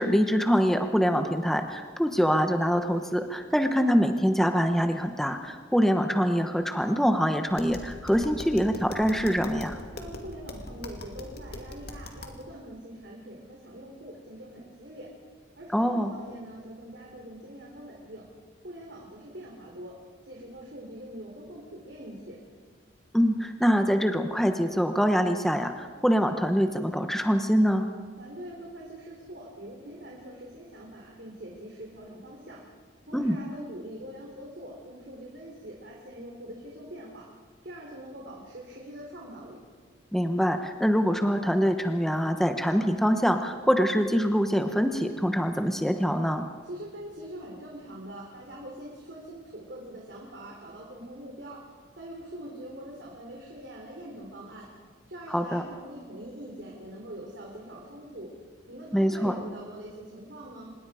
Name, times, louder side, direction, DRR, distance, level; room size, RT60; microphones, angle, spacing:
voice 1, 0.0-9.8 15.7-16.1 23.1-27.9 33.1-33.4 40.1-46.4 55.3-55.6 58.9-59.4, equal, ahead, 6 dB, 1.0 m, -24 dB
Tap, 7.5-12.4, left 1 dB, 55° left, 2.4 m, -41 dB
voice 2, 9.9-15.1 15.6-18.3 18.6-19.9 20.3-22.4 28.2-32.6 33.1-37.3 37.6-39.6 46.6-51.6 52.0-54.7 55.1-58.3 58.7-60.7, right 1 dB, 65° right, -2 dB, 3.6 m, -43 dB
26.0 x 20.5 x 5.0 m, 1.6 s
head